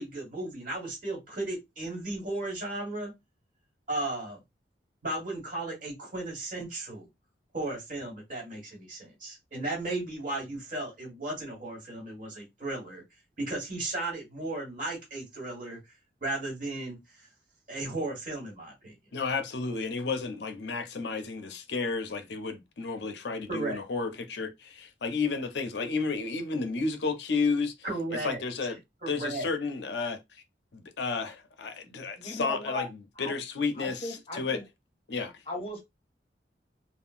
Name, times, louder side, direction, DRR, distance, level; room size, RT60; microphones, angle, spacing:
voice 1, 0.0-3.1 3.9-4.4 5.0-7.1 7.5-13.0 13.4-15.8 16.2-17.3 17.7-18.9 23.5-23.8 27.8-28.4 29.0-29.5, right 2 dB, 45° right, 1.5 m, -35 dB
voice 2, 19.1-27.7 28.2-28.8 29.1-30.2 30.7-34.6 35.1-35.3, left 4 dB, 70° left, 0.5 m, -32 dB
voice 3, 31.8-32.9 33.2-33.3 33.8-34.6 35.5-35.8, left 1 dB, 30° left, 0.8 m, -37 dB
3.6 x 2.1 x 2.5 m
head